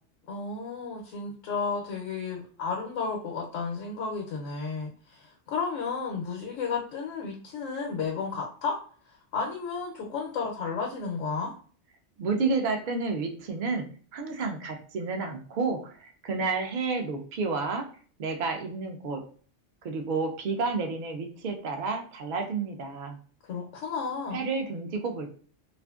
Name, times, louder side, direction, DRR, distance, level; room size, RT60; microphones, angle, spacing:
voice 1, 0.3-8.8 9.3-11.5 23.4-24.4, left 5 dB, 90° left, 0 dB, 1.0 m, -32 dB
voice 2, 12.2-13.9 14.1-17.9 18.2-19.2 19.8-23.2 24.3-25.3, right 4 dB, 60° right, 3 dB, 0.5 m, -30 dB
2.5 x 2.4 x 2.3 m, 0.43 s
omnidirectional pair, 1.3 m